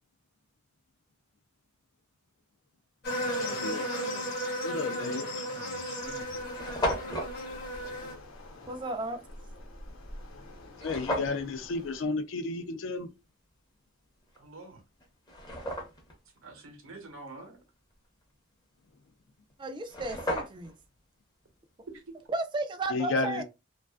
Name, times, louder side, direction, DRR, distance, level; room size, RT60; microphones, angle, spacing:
sound 1, 3.0-8.1, equal, 45° left, 1.0 m, -34 dB
voice 1, 3.4-4.1 4.6-5.5 5.8-6.0 10.8-13.1 22.9-23.4, left 3 dB, 65° left, 0.4 m, -33 dB
sound 2, 5.0-5.2 5.9-6.0 6.1-6.2 6.4-7.3 10.8-11.4 14.3-14.4 15.0-16.1 19.5-19.6 19.8-20.8, left 1 dB, 20° left, 0.6 m, -33 dB
voice 2, 5.5-6.4 14.4-14.8 16.4-17.6 21.9-22.2, right 3 dB, 85° right, 0.8 m, -46 dB
Waves surf, 6.0-12.1, left 1 dB, 85° left, 0.8 m, -48 dB
voice 3, 8.7-9.2 19.6-20.7 22.3-23.4, right 2 dB, 25° right, 0.3 m, -34 dB
2.4 x 2.3 x 2.2 m
head